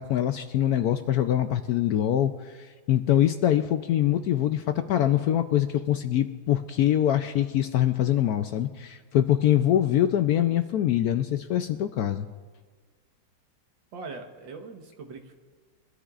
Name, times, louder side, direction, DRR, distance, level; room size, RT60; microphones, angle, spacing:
voice 1, 0.0-12.3, left 11 dB, 75° left, 8 dB, 0.9 m, -24 dB
voice 2, 13.9-15.3, right 4 dB, 85° right, 4 dB, 2.0 m, -41 dB
23.0 x 13.5 x 2.4 m, 1.5 s
omnidirectional pair, 2.0 m